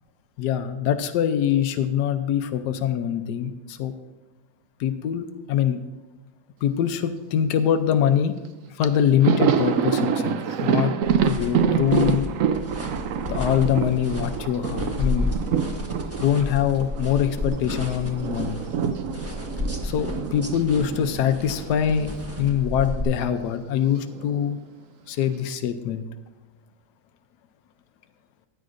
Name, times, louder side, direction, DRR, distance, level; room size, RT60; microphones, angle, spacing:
voice 1, 0.4-3.9 4.8-5.8 6.6-8.3 8.7-10.9 11.2-12.3 13.3-15.3 16.2-18.6 19.8-22.1 22.4-24.6 25.1-26.0, left 9 dB, 85° left, 8 dB, 1.2 m, -23 dB
Thunder, 8.4-8.5 8.8-17.6 17.9-22.2 22.5-22.6 23.8-24.5, right 7 dB, 65° right, 0.9 m, -26 dB
sound 1, 11.0-23.0, left 1 dB, 10° right, 1.1 m, -32 dB
15.5 x 10.5 x 2.6 m, 1.1 s
omnidirectional pair, 1.8 m